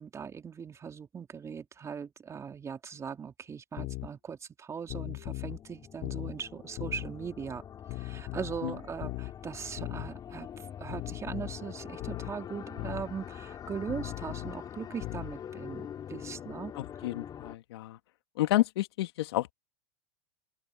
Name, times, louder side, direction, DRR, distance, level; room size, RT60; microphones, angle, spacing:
voice 1, 0.0-7.6 7.9-16.7, right 6 dB, 20° right, 3.2 m, -40 dB
sound 1, 3.8-4.1 4.9-5.6 6.0-6.4 6.8-7.1 7.9-8.6 9.0-9.3 9.8-10.1 10.9-11.6 12.0-12.3 12.8-13.1 13.9-14.6 15.0-15.4, left 22 dB, 50° left, 3.1 m, -38 dB
sound 2, 4.8-17.6, left 9 dB, 30° left, 4.5 m, -44 dB
voice 2, 16.8-18.0 18.4-19.5, left 16 dB, 75° left, 2.5 m, -30 dB
open air
hypercardioid pair, 115°, 13 cm